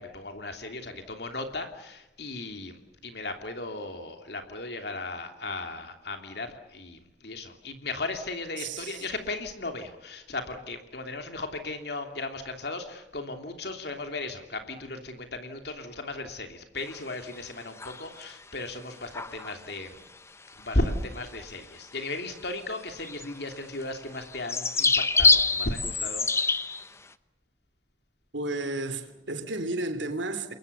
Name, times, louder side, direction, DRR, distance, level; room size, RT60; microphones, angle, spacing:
voice 1, 0.0-20.0 20.6-26.3, left 2 dB, 60° left, 3.0 m, -35 dB
voice 2, 8.6-9.0 28.3-30.5, right 2 dB, 80° right, 3.2 m, -32 dB
sound 1, 16.9-17.4 17.8-18.3 18.6-18.7 19.1-19.6 20.6-20.8 21.1-21.3 22.0-22.1 22.4-22.5 23.0-26.9, left 4 dB, 15° left, 0.9 m, -26 dB
30.0 x 22.5 x 6.9 m
head